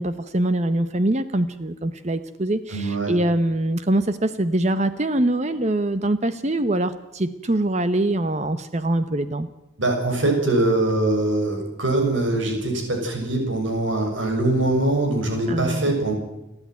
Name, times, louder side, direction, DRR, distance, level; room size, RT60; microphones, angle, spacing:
voice 1, 0.0-9.5 15.5-15.9, right 1 dB, 35° right, 11 dB, 0.8 m, -23 dB
voice 2, 2.7-3.1 9.8-16.1, right 2 dB, 75° right, 2 dB, 6.4 m, -22 dB
29.0 x 11.0 x 9.4 m, 0.92 s
head